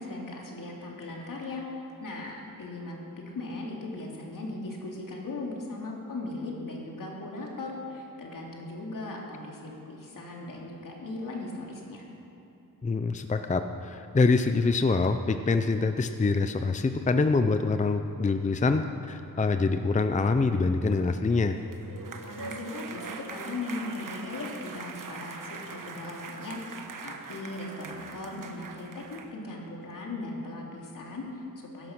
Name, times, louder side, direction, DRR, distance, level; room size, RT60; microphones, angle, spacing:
voice 1, 0.0-3.0 3.3-12.0 22.2-31.9, left 2 dB, 70° left, -1 dB, 2.9 m, -38 dB
voice 2, 12.8-21.6, left 3 dB, 20° left, 8 dB, 0.6 m, -25 dB
sound 1, 21.4-29.3, right 4 dB, 70° right, 1.2 m, -42 dB
17.0 x 11.5 x 6.1 m, 2.8 s
wide cardioid pair, 100°, 34 cm